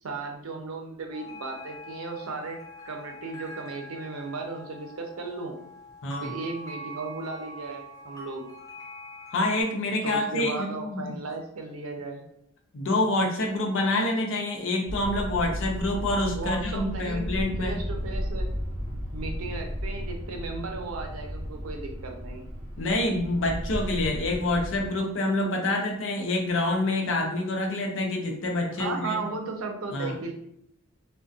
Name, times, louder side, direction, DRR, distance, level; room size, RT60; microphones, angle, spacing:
voice 1, 0.0-2.6 2.9-5.6 6.2-8.4 10.0-12.2 16.3-18.5 19.1-22.5 28.7-30.3, right 3 dB, 85° right, 3 dB, 0.5 m, -35 dB
sound 1, 1.1-9.6, equal, 15° left, 0.5 m, -44 dB
voice 2, 6.0-6.3 9.3-11.0 12.7-17.8 22.8-29.2 29.9-30.1, left 2 dB, 65° left, 2 dB, 0.5 m, -27 dB
sound 2, 14.9-24.9, equal, 25° right, 1.0 m, -34 dB
2.4 x 2.1 x 2.5 m, 0.75 s
head